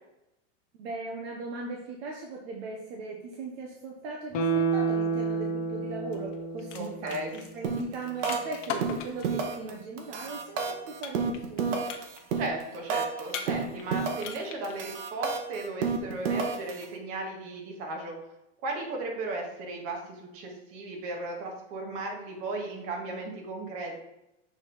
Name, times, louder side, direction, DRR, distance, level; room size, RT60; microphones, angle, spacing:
voice 1, 0.7-11.8, right 3 dB, 55° right, 0 dB, 1.1 m, -39 dB
Guitar, 4.3-7.6 8.0-8.1, right 4 dB, 25° left, 0.5 m, -30 dB
sound 1, 6.1-6.3 6.6-9.4 11.0-11.6 11.9-12.4 13.3-13.9 14.2-14.7, left 7 dB, 85° left, 1.1 m, -38 dB
voice 2, 6.7-7.3 12.3-18.1 18.6-24.0, right 2 dB, 40° right, 1 dB, 1.6 m, -36 dB
sound 2, 7.6-7.9 8.2-8.5 8.8-9.7 10.0-13.2 13.5-14.4 14.6-16.8, right 5 dB, 75° right, 1.2 m, -30 dB
7.0 x 3.7 x 4.0 m, 0.89 s
supercardioid pair, 150°, 36 cm